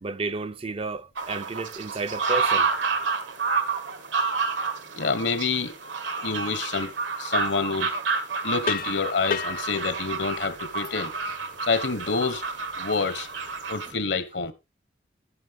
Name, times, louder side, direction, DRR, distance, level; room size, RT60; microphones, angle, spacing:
voice 1, 0.0-2.7 13.9-14.0, right 3 dB, 30° right, 0.5 m, -32 dB
sound 1, 1.2-13.9, right 4 dB, 85° right, 1.9 m, -29 dB
voice 2, 4.9-5.7 6.2-8.0 8.4-11.1 11.6-12.4 12.8-13.3 13.7-14.5, left 4 dB, 70° left, 1.2 m, -27 dB
sound 2, 8.6-13.7, left 5 dB, 50° left, 0.7 m, -36 dB
10.5 x 9.5 x 3.6 m
head